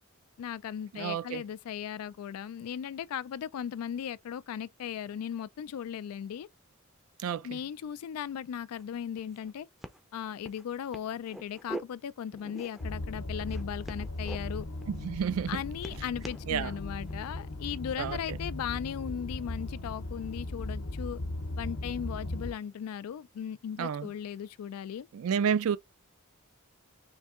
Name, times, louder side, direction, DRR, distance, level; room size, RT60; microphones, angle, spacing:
voice 1, 0.4-6.5 7.4-9.7 10.1-14.7 15.5-21.2 21.6-25.1, left 8 dB, 85° left, 0.3 m, -37 dB
voice 2, 0.9-1.4 7.2-7.6 14.9-15.6 16.5-16.7 18.0-18.4 23.8-24.1 25.1-25.8, right 7 dB, 70° right, 0.3 m, -30 dB
sound 1, 8.8-8.9 9.2-9.5 9.8-10.0 10.4-10.6 10.9-11.8 12.3-12.9 13.4-14.4 14.8-15.1 15.4-16.5 17.1-17.3, right 1 dB, ahead, 0.4 m, -43 dB
sound 2, 12.8-22.5, left 2 dB, 65° left, 0.7 m, -37 dB
3.3 x 2.7 x 3.6 m
head